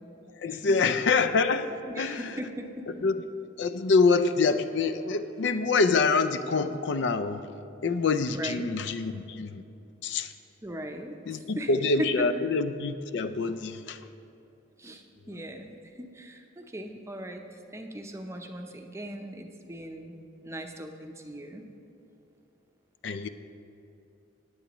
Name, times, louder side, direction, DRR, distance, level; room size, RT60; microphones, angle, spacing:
voice 1, 0.4-2.2 3.0-3.1 3.6-7.4 7.8-9.6 10.0-10.3 11.3-14.0 23.0-23.3, left 4 dB, 60° left, 11 dB, 0.4 m, -26 dB
voice 2, 1.8-2.9 8.3-8.7 10.6-11.7 12.0-12.1 14.8-20.2 20.4-21.6, equal, 15° right, 4 dB, 0.6 m, -39 dB
15.5 x 10.0 x 3.0 m, 2.7 s
head